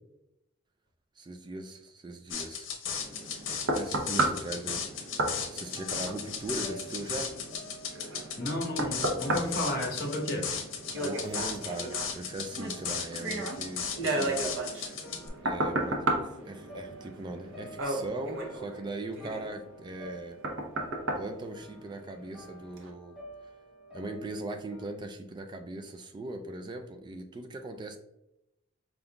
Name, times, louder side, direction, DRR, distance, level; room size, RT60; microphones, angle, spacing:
voice 1, 1.2-2.7 3.7-5.2 5.5-7.4 9.8-9.9 10.9-14.8 15.4-20.4 21.2-23.2 23.9-28.0, right 2 dB, 25° right, 6 dB, 0.3 m, -40 dB
sound 1, 2.3-15.3, left 6 dB, 90° left, 0.7 m, -36 dB
sound 2, 3.0-22.3 22.8-22.9, right 2 dB, 90° right, 0.8 m, -34 dB
sound 3, 5.5-24.8, equal, 5° right, 1.2 m, -50 dB
voice 2, 8.4-10.5, left 1 dB, 50° left, 1 dB, 1.0 m, -32 dB
5.0 x 3.6 x 2.3 m, 0.88 s
head